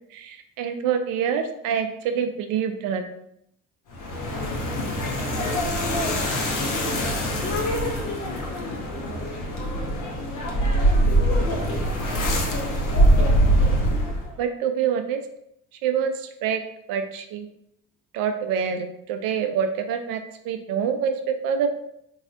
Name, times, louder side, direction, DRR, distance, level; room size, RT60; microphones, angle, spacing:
voice 1, 0.1-3.0 13.2-13.3 14.4-15.2 15.8-16.6 16.9-17.5 18.1-21.8, right 7 dB, 55° right, 7 dB, 0.5 m, -26 dB
sound 1, 3.9-14.3, equal, 50° left, 1.0 m, -23 dB
voice 2, 4.2-4.7 5.1-5.6 5.9-6.2 6.6-7.5 7.9-8.6 8.9-9.3 10.9-12.0, right 1 dB, 5° left, -1 dB, 1.0 m, -40 dB
4.0 x 2.7 x 2.5 m, 0.76 s
figure-of-eight pair, 50°, 41 cm